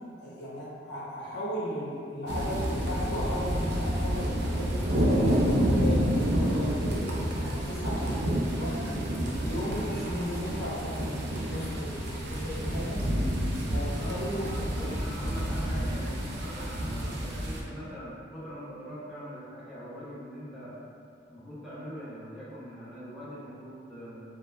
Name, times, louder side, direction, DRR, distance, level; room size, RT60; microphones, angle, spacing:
voice 1, 0.2-5.4 5.7-9.0 9.4-13.0 13.6-14.9 16.1-16.2, equal, 60° left, -8 dB, 0.7 m, -36 dB
sound 1, 2.3-17.6, equal, 60° right, 0.4 m, -29 dB
voice 2, 13.6-20.8 21.3-24.2, equal, ahead, -12 dB, 0.5 m, -42 dB
2.2 x 2.1 x 3.0 m, 2.4 s
head